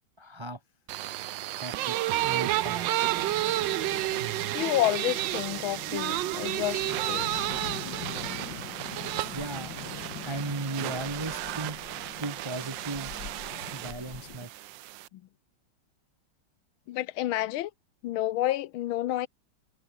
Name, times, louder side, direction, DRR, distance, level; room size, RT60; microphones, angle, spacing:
voice 1, 0.2-0.6 1.4-3.0 9.3-9.7 10.2-11.8 12.2-13.1 13.7-14.5, right 2 dB, 25° right, 0.5 m, -36 dB
sound 1, 0.9-15.1, right 15 dB, 75° right, 1.3 m, -32 dB
sound 2, 3.1-14.5, left 7 dB, 60° left, 2.3 m, -43 dB
voice 2, 4.5-7.5 15.1-15.2 16.9-17.7 18.0-19.3, left 14 dB, 85° left, 1.6 m, -30 dB
sound 3, 7.9-14.3, left 2 dB, 35° left, 6.8 m, -58 dB
omnidirectional pair, 2.2 m